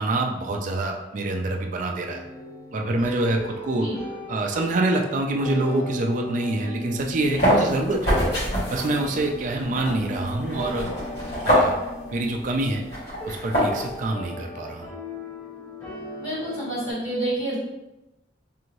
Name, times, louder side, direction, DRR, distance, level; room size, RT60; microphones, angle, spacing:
voice 1, 0.0-2.2 2.7-3.9 4.3-8.2 8.7-10.9 11.4-11.7 12.1-12.8 13.3-14.9, right 2 dB, 45° right, 2 dB, 0.4 m, -26 dB
sound 1, 2.0-16.9, left 1 dB, 15° left, 1.1 m, -37 dB
sound 2, 7.0-14.0, equal, 65° left, 1.2 m, -26 dB
voice 2, 16.2-17.6, right 1 dB, 35° left, -12 dB, 1.5 m, -28 dB
2.7 x 2.6 x 3.0 m, 0.97 s
head